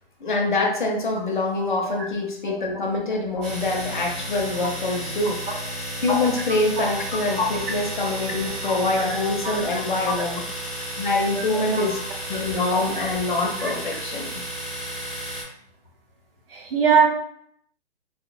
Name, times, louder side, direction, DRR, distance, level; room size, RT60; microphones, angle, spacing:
voice 1, 0.2-5.4 6.0-10.4 11.0-12.0 12.3-14.3, left 2 dB, 45° left, 0 dB, 0.6 m, -25 dB
Domestic sounds home sounds, 3.4-15.4, right 1 dB, 15° right, 0.7 m, -33 dB
voice 2, 16.5-17.1, right 7 dB, 60° right, 0 dB, 0.7 m, -20 dB
2.7 x 2.1 x 2.4 m, 0.72 s
hypercardioid pair, 170°, 33 cm